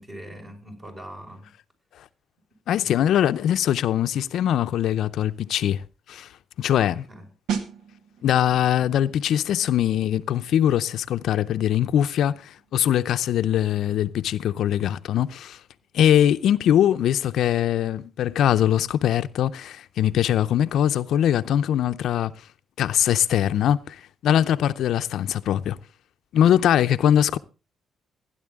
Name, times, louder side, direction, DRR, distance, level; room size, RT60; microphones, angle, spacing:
voice 1, 0.0-1.5 2.8-3.1 6.7-7.3, right 1 dB, 30° right, 5.3 m, -42 dB
voice 2, 2.7-7.0 8.2-15.6 15.9-22.5 22.8-25.8 26.3-27.4, left 10 dB, 75° left, 0.6 m, -22 dB
sound 1, 7.5-18.0 18.3-18.5, right 7 dB, 85° right, 1.9 m, -40 dB
16.0 x 10.5 x 3.5 m
cardioid pair, 90°, 0 cm